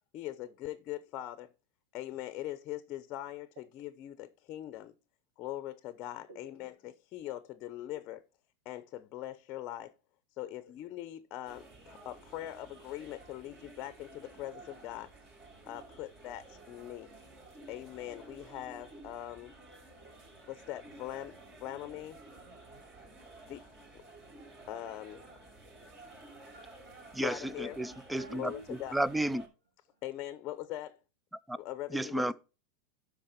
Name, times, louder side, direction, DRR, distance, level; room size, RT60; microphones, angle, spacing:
voice 1, 0.1-1.5 1.9-3.5 3.7-4.9 5.4-8.2 8.6-9.9 10.4-15.1 15.6-17.1 17.7-19.5 20.5-22.2 23.4-23.6 23.9-24.0 24.7-25.3 27.2-27.8 28.3-29.0 30.0-31.0 31.6-32.3, left 13 dB, 40° left, 0.8 m, -41 dB
voice 2, 6.3-6.6 10.4-10.6 15.9-16.1 17.6-17.7 20.0-20.3 22.7-23.4 26.5-26.7 27.2-28.9 29.9-30.0 31.5-31.6, right 4 dB, 85° right, 2.5 m, -54 dB
sound 1, 11.4-29.5, right 2 dB, 35° right, 6.3 m, -53 dB
voice 3, 27.1-29.4 31.5-31.6 31.9-32.3, right 1 dB, 5° right, 0.5 m, -33 dB
12.5 x 4.8 x 5.1 m
supercardioid pair, 135°, 0 cm